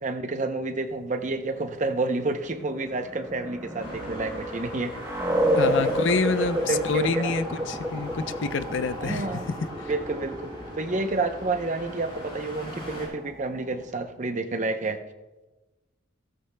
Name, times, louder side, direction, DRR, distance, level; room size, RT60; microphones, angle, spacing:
voice 1, 0.0-4.9 5.5-5.9 6.5-7.4 9.0-9.4 9.9-15.0, right 3 dB, 35° right, 0.7 m, -29 dB
sound 1, 2.6-14.0, equal, 15° right, 0.9 m, -31 dB
Traffic noise roadway noise, 3.8-13.1, left 1 dB, 25° left, 4.0 m, -42 dB
voice 2, 5.6-9.9, left 4 dB, 60° left, 0.5 m, -28 dB
16.0 x 14.0 x 2.2 m
head